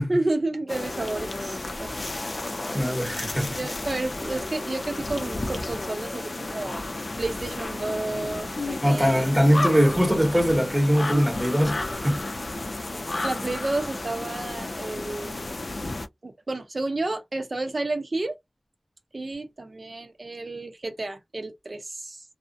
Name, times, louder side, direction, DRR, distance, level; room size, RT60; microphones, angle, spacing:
voice 1, 0.1-2.1 3.5-6.8 7.2-9.8 11.1-11.2 13.2-15.4 16.2-18.4 19.1-22.2, right 2 dB, 60° right, 0.6 m, -31 dB
sound 1, 0.7-16.1, left 2 dB, 60° left, 0.4 m, -32 dB
voice 2, 2.7-3.6 8.8-12.2, equal, 10° right, 1.1 m, -21 dB
2.4 x 2.0 x 2.5 m
wide cardioid pair, 45°, 0 cm